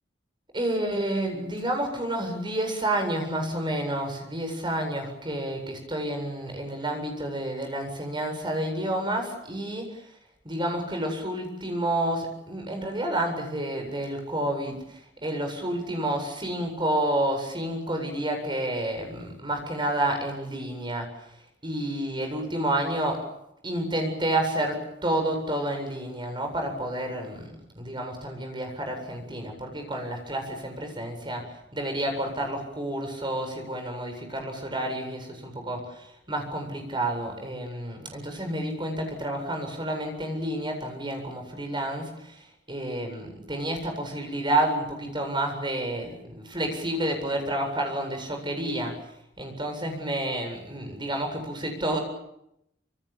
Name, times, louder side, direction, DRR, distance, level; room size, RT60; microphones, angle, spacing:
voice 1, 0.5-9.8 10.4-14.8 15.2-21.1 21.6-23.2 23.6-31.4 31.7-35.8 36.3-42.4 42.7-48.9 49.4-52.0, right 1 dB, 25° right, 4 dB, 7.9 m, -29 dB
27.5 x 27.0 x 7.2 m, 0.79 s
head